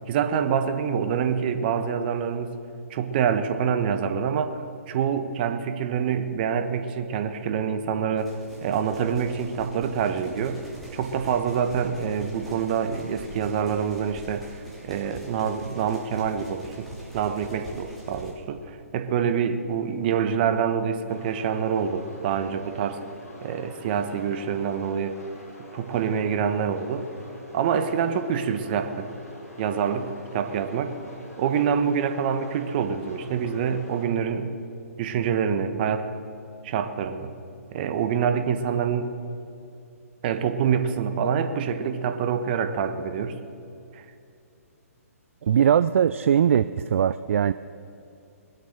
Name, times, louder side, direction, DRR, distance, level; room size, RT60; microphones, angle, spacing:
voice 1, 0.1-2.6 2.9-8.3 8.6-10.6 10.9-14.4 14.8-16.9 17.1-23.0 23.4-25.2 25.7-27.1 27.5-29.1 29.6-31.0 31.4-34.5 35.0-36.1 36.6-37.4 37.7-39.1 40.2-43.4 43.9-44.0, right 7 dB, 40° right, 8 dB, 1.2 m, -26 dB
sound 1, 8.2-18.3, right 1 dB, ahead, 3.3 m, -44 dB
sound 2, 21.1-34.1, left 1 dB, 70° left, 4.4 m, -45 dB
voice 2, 45.4-47.5, right 8 dB, 55° right, 13 dB, 0.4 m, -20 dB
21.5 x 8.1 x 6.6 m, 2.6 s
figure-of-eight pair, 135°, 8 cm